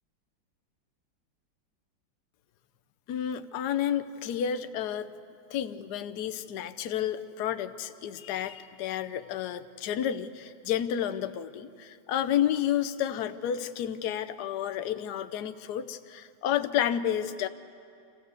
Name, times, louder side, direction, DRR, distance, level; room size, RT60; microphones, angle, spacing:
voice 1, 3.1-5.1 5.5-17.5, left 10 dB, 65° left, 11 dB, 1.2 m, -31 dB
26.0 x 15.0 x 8.1 m, 2.5 s
omnidirectional pair, 2.0 m